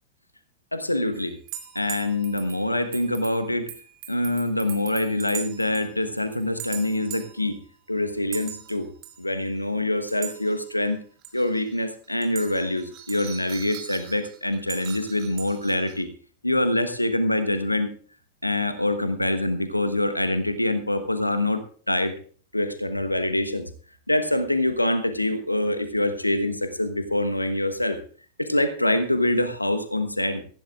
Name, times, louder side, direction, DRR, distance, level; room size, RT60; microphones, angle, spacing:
voice 1, 0.7-1.3 1.7-3.7 4.1-7.6 7.9-8.9 9.2-11.0 11.3-16.1 16.4-17.9 18.4-22.1 22.5-23.7 24.1-28.0 28.4-30.4, left 1 dB, 85° left, 10 dB, 1.2 m, -25 dB
sound 1, 1.1-5.9 6.2-7.5 8.3-8.8 9.0-9.2 10.1-10.9 11.2-11.8 12.0-16.0, right 11 dB, 40° right, 2.8 m, -40 dB
18.0 x 15.0 x 2.5 m, 0.43 s
figure-of-eight pair, 90°, 0 cm